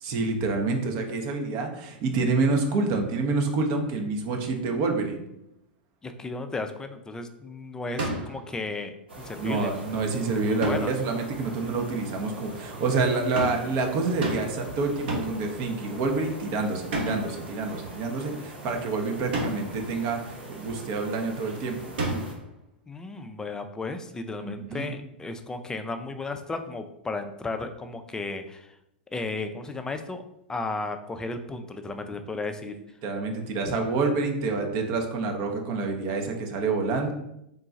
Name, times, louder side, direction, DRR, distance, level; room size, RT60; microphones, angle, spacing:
voice 1, 0.0-5.2 9.4-21.9 24.4-25.0 32.6-32.7 33.0-37.1, right 3 dB, 50° right, 3 dB, 0.9 m, -27 dB
voice 2, 6.0-8.9 9.3-9.8 10.5-10.9 22.9-28.7 29.1-30.2 30.5-32.7, left 3 dB, 10° left, 7 dB, 0.4 m, -34 dB
sound 1, 8.0-8.4 10.6-11.0 13.4-13.7 14.2-14.6 15.1-15.5 16.9-17.4 19.3-19.8 22.0-22.5, right 1 dB, 65° right, 1.2 m, -30 dB
sound 2, 9.1-22.3, right 1 dB, 90° right, 1.0 m, -43 dB
3.8 x 2.3 x 3.9 m, 0.82 s
hypercardioid pair, 105°, 6 cm